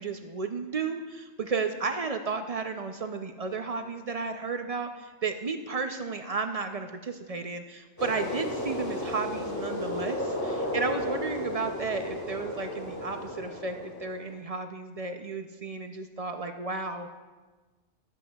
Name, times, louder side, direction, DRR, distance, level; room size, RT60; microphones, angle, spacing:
voice 1, 0.0-17.2, right 4 dB, 55° right, 6 dB, 0.4 m, -33 dB
sound 1, 8.0-14.3, left 1 dB, 15° left, 2.3 m, -34 dB
19.0 x 8.1 x 2.3 m, 1.3 s
omnidirectional pair, 1.3 m